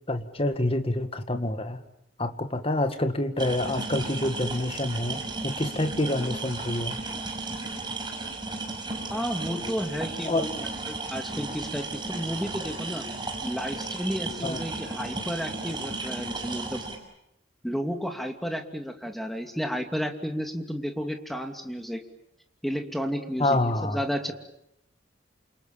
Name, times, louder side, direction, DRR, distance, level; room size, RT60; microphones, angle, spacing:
voice 1, 0.1-1.8 2.2-7.0 10.2-10.5 14.4-14.6 23.4-24.0, left 1 dB, 30° left, 9 dB, 2.0 m, -27 dB
sound 1, 3.4-17.0, right 3 dB, 25° right, 5.8 m, -34 dB
voice 2, 9.1-13.0 13.4-16.8 17.6-22.0 22.6-24.3, equal, ahead, 5 dB, 2.6 m, -32 dB
29.0 x 27.5 x 7.4 m, 0.81 s
head